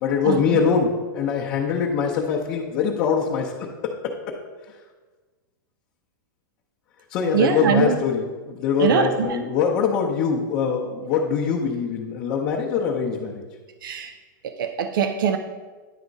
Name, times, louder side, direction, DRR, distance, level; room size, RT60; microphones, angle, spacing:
voice 1, 0.0-4.1 4.7-4.8 7.1-13.4, left 6 dB, 25° left, -4 dB, 0.7 m, -23 dB
voice 2, 7.3-8.0 8.8-9.4 13.8-14.1 14.4-15.4, right 7 dB, 80° right, 9 dB, 0.6 m, -22 dB
9.9 x 3.6 x 5.2 m, 1.4 s
supercardioid pair, 175°, 11 cm